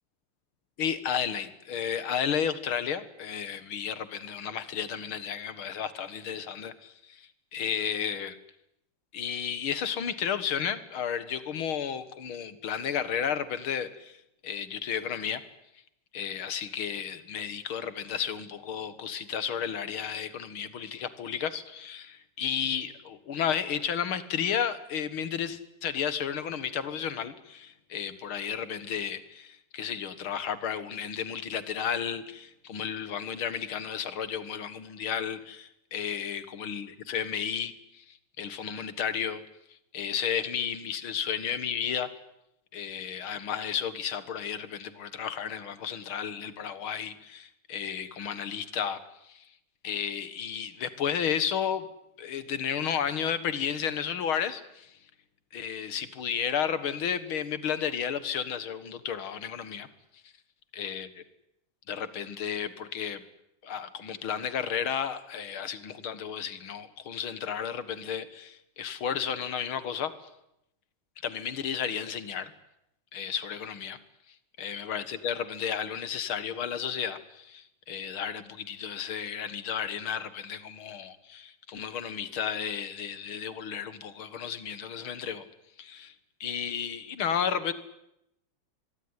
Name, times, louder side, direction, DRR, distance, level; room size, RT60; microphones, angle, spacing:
voice 1, 0.8-8.4 9.1-14.2 14.4-15.4 16.1-39.4 39.9-42.1 42.7-49.5 49.8-51.9 52.2-55.0 55.5-59.9 60.7-61.2 61.9-63.2 63.6-70.1 71.2-72.5 73.1-74.0 74.6-85.5 85.8-86.1 86.4-87.7, left 8 dB, 70° left, 14 dB, 2.4 m, -33 dB
24.0 x 22.5 x 9.7 m, 0.83 s
omnidirectional pair, 2.4 m